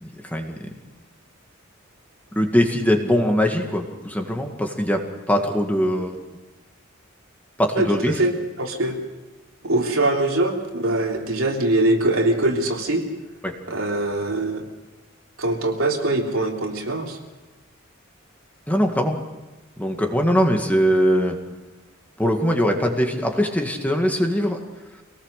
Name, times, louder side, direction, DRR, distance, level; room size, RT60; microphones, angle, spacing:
voice 1, 0.0-0.7 2.4-6.2 7.6-8.1 13.4-13.5 18.7-19.2 19.8-21.4 22.2-24.6, equal, 10° left, 3 dB, 1.9 m, -21 dB
voice 2, 7.7-9.0 9.6-13.0 13.7-14.6 15.4-17.2, right 2 dB, 80° right, 0 dB, 3.3 m, -22 dB
24.5 x 18.5 x 6.6 m, 1.1 s
head